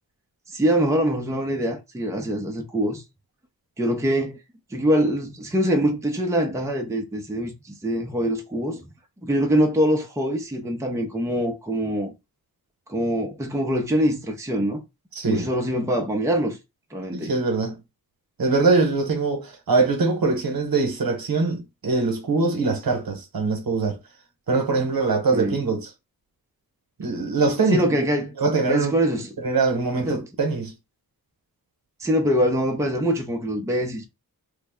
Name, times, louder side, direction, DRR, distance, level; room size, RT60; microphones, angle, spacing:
voice 1, 0.5-3.0 3.8-4.4 4.7-8.8 9.2-12.1 12.9-14.8 15.3-16.6 16.9-17.3 25.3-25.6 27.7-28.3 28.7-29.3 30.1-30.3 32.0-34.0, equal, 10° right, 0.5 m, -24 dB
voice 2, 15.2-15.5 17.1-17.8 18.4-24.0 24.5-25.9 27.0-27.8 28.4-28.9 29.4-30.7, right 3 dB, 65° right, 1.0 m, -22 dB
3.3 x 2.0 x 3.5 m
wide cardioid pair, 100°, 38 cm